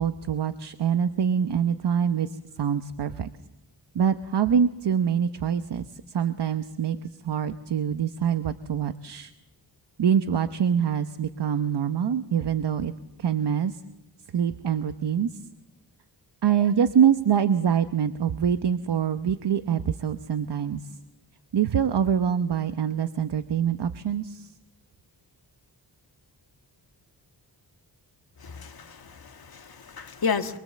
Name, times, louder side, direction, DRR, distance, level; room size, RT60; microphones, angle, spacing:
voice 1, 0.0-2.3 2.6-3.3 3.9-9.3 10.0-12.9 13.2-13.8 14.3-15.3 16.4-20.8 21.5-24.5, right 8 dB, 65° right, 1.0 m, -25 dB
voice 2, 28.4-30.6, left 5 dB, 55° left, 1.7 m, -32 dB
25.5 x 23.5 x 7.4 m
wide cardioid pair, 120°, 44 cm